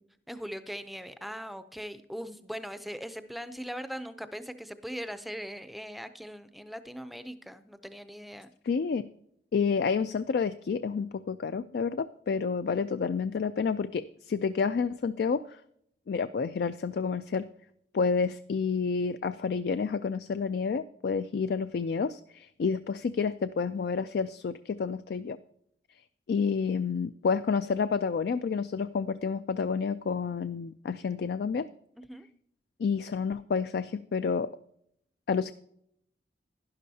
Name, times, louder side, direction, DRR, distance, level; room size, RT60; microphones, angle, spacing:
voice 1, 0.3-8.5 32.0-32.3, equal, ahead, 11 dB, 0.5 m, -40 dB
voice 2, 8.7-9.0 9.5-15.6 16.1-17.5 17.9-25.4 26.3-31.7 32.8-34.5 35.3-35.5, left 5 dB, 60° left, 12 dB, 0.3 m, -29 dB
11.5 x 11.0 x 2.7 m, 0.71 s
head